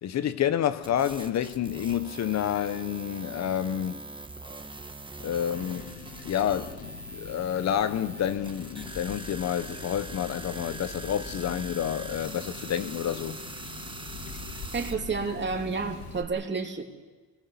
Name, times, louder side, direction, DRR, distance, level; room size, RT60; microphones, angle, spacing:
voice 1, 0.0-4.1 5.2-13.4, left 10 dB, 60° left, 0.9 m, -29 dB
sound 1, 0.8-14.9, right 2 dB, 15° right, 1.6 m, -42 dB
sound 2, 5.5-16.2, left 5 dB, 80° left, 2.1 m, -43 dB
voice 2, 14.7-16.8, right 4 dB, 35° right, 2.9 m, -30 dB
24.5 x 20.0 x 7.1 m
cardioid pair, 90°, 30 cm